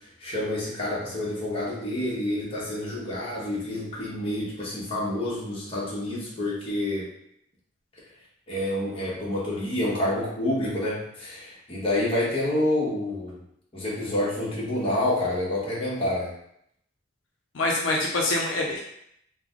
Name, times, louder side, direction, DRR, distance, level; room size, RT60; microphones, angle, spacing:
voice 1, 0.2-7.1 8.5-13.4 13.7-16.3, left 1 dB, 30° left, -6 dB, 1.0 m, -28 dB
voice 2, 17.5-18.8, left 2 dB, 80° left, -1 dB, 0.5 m, -25 dB
3.3 x 2.1 x 3.6 m, 0.73 s
head